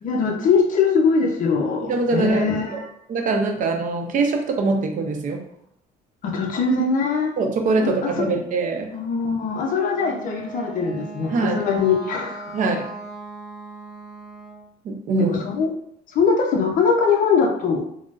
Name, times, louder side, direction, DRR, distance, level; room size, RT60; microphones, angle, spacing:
voice 1, 0.0-2.9 6.2-7.3 7.9-8.3 8.9-12.4 15.2-15.7 16.1-17.8, left 5 dB, 50° left, 1 dB, 0.6 m, -21 dB
voice 2, 1.9-2.8 3.1-5.5 7.4-8.9 11.3-11.6 12.5-12.9 14.8-15.4, right 3 dB, 50° right, 3 dB, 0.5 m, -23 dB
Wind instrument woodwind instrument, 9.7-14.7, right 3 dB, ahead, 0.5 m, -38 dB
3.6 x 2.0 x 2.4 m, 0.70 s
cardioid pair, 110°, 17 cm